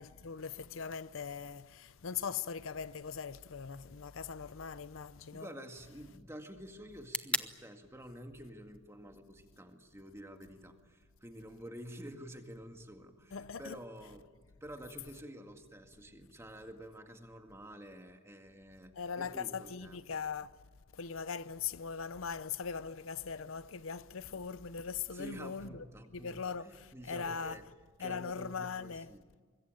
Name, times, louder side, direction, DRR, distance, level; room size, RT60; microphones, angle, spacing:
voice 1, 0.0-5.5 13.3-13.8 19.0-20.5 20.9-25.8 26.1-27.6 28.0-29.1, left 6 dB, 80° left, 0.7 m, -40 dB
sound 1, 3.0-11.0, left 2 dB, 5° left, 0.8 m, -46 dB
voice 2, 5.3-14.3 14.6-20.1 25.1-27.7 28.0-29.3, equal, 15° right, 2.0 m, -49 dB
25.0 x 21.5 x 9.0 m
head